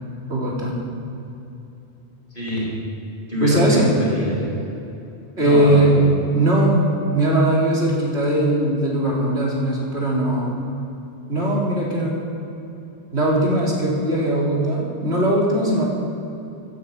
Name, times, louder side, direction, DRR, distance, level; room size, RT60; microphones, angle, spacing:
voice 1, 0.3-0.8 3.4-3.9 5.4-6.0 6.3-6.8 7.1-10.6 11.3-12.2 13.1-15.9, right 1 dB, 85° right, -4 dB, 3.6 m, -19 dB
voice 2, 2.3-2.8 3.3-4.5 5.4-6.0, left 1 dB, 50° left, -4 dB, 4.4 m, -25 dB
13.5 x 8.8 x 8.0 m, 2.9 s
omnidirectional pair, 1.1 m